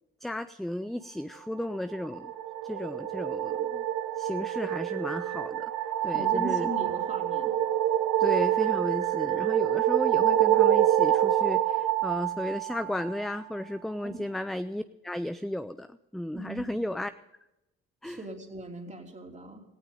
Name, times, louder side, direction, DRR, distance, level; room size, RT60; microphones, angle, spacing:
voice 1, 0.2-2.3 2.6-3.8 4.2-6.7 8.2-17.1 18.0-18.2, left 1 dB, ahead, 11 dB, 0.5 m, -34 dB
sound 1, 1.9-13.3, right 12 dB, 80° right, 1.0 m, -26 dB
voice 2, 6.1-7.5 14.0-14.2 16.3-16.7 18.0-19.6, right 2 dB, 25° right, 2 dB, 3.2 m, -38 dB
17.5 x 15.5 x 3.8 m, 0.91 s
cardioid pair, 90°, 30 cm